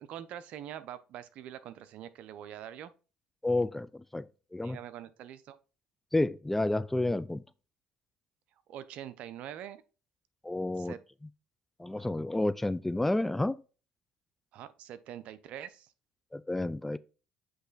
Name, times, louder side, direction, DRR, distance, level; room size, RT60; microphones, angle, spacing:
voice 1, 0.0-2.9 4.6-5.6 8.7-9.8 10.8-11.0 12.0-12.1 14.5-15.9, right 10 dB, 65° right, 0.8 m, -44 dB
voice 2, 3.4-4.8 6.1-7.4 10.4-10.9 11.8-13.6 16.3-17.0, left 2 dB, 10° left, 0.3 m, -30 dB
8.0 x 3.3 x 4.0 m
supercardioid pair, 80°, 2 cm